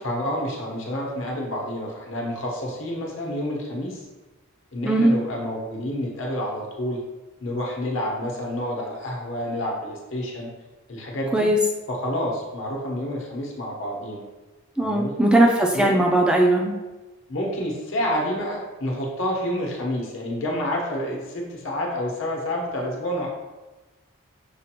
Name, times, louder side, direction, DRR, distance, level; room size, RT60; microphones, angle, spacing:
voice 1, 0.0-4.0 4.7-7.0 7.4-10.5 10.9-11.5 11.9-14.2 14.8-15.1 15.7-15.9 17.3-23.3, equal, 60° left, -2 dB, 0.9 m, -29 dB
voice 2, 14.8-16.7, right 1 dB, 5° right, -1 dB, 0.4 m, -19 dB
6.3 x 2.5 x 2.9 m, 1.2 s
head